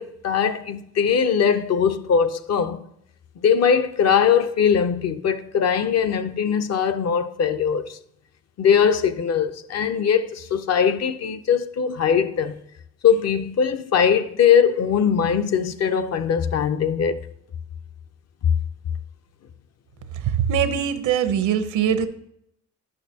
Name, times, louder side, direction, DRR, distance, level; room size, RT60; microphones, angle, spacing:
voice 1, 0.0-2.8 3.4-8.0 8.6-12.6 13.0-17.2 18.4-18.5, left 7 dB, 55° left, 0.7 m, -21 dB
voice 2, 20.2-22.1, right 8 dB, 80° right, 0.8 m, -22 dB
11.0 x 6.5 x 2.8 m
cardioid pair, 90°, 30 cm